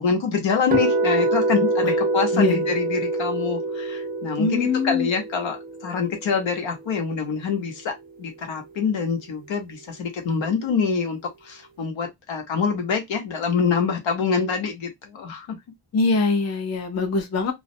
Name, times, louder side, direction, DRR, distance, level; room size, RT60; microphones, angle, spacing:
voice 1, 0.0-15.6, left 6 dB, 70° left, 0.9 m, -25 dB
sound 1, 0.7-6.8, right 2 dB, 20° right, 0.4 m, -25 dB
voice 2, 2.3-2.8 4.4-5.1 15.9-17.5, left 4 dB, 35° left, 0.5 m, -23 dB
2.3 x 2.0 x 2.6 m
wide cardioid pair, 140°, 47 cm